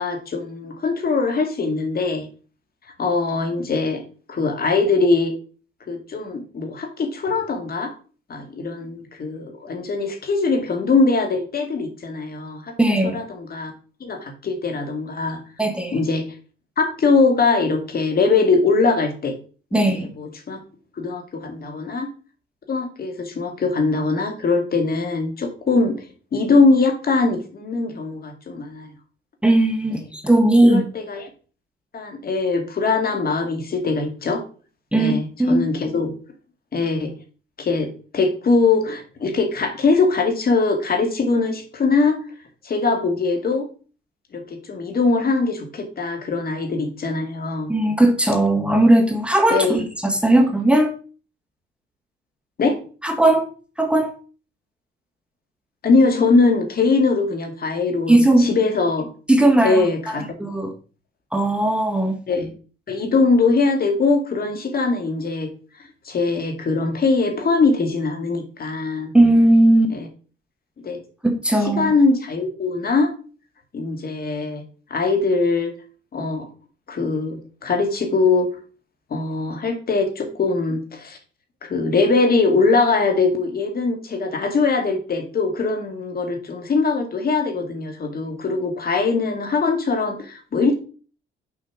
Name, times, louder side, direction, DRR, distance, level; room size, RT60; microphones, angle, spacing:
voice 1, 0.0-2.2 3.0-4.0 4.3-5.3 5.9-7.9 8.3-12.8 13.0-13.7 14.0-15.4 15.9-16.3 16.8-19.3 19.7-20.6 21.0-22.1 22.7-26.1 26.3-28.9 30.6-31.3 31.9-34.4 35.0-36.1 36.7-37.1 37.6-42.2 42.6-43.7 44.3-47.7 49.5-49.9 52.6-52.8 55.8-59.1 59.6-60.2 62.3-62.5 62.9-65.5 66.1-69.1 69.9-70.1 70.8-71.0 71.6-73.1 73.7-74.6 74.9-75.7 76.1-76.5 76.9-78.5 79.1-81.2 81.6-90.8, left 3 dB, 50° left, 2.3 m, -21 dB
voice 2, 12.8-13.2 15.6-16.0 19.7-20.1 29.4-30.8 34.9-35.1 35.4-35.6 47.7-50.9 53.0-53.4 53.8-54.1 58.1-58.5 59.3-60.7 61.3-62.2 69.1-69.9 71.2-71.9, right 1 dB, 5° right, 1.4 m, -17 dB
6.6 x 5.6 x 6.1 m
cardioid pair, 90°, 20 cm